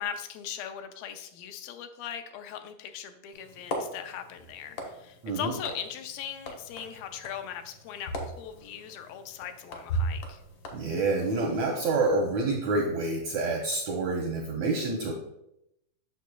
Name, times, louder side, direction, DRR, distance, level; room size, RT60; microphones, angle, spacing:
voice 1, 0.0-10.4, left 9 dB, 90° left, 7 dB, 2.4 m, -39 dB
sound 1, 3.3-11.9, right 1 dB, 65° left, 1.5 m, -38 dB
voice 2, 10.7-15.1, right 3 dB, 80° right, 0 dB, 1.6 m, -28 dB
8.2 x 6.5 x 2.2 m, 0.83 s
omnidirectional pair, 4.0 m